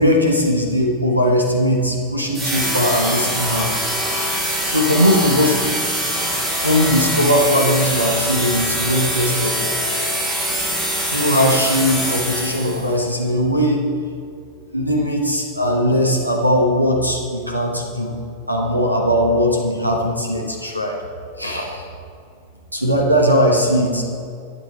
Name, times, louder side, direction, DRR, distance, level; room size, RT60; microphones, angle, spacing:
voice 1, 0.0-3.7 4.1-4.4 4.6-5.6 6.6-9.5 11.1-13.8 14.7-18.1 18.5-21.0 21.4-21.8 22.7-24.0, equal, 90° right, 0 dB, 1.2 m, -19 dB
sound 1, 2.3-12.9, right 1 dB, 10° right, 2.8 m, -23 dB
11.5 x 8.9 x 4.2 m, 2.4 s
figure-of-eight pair, 90°, 0 cm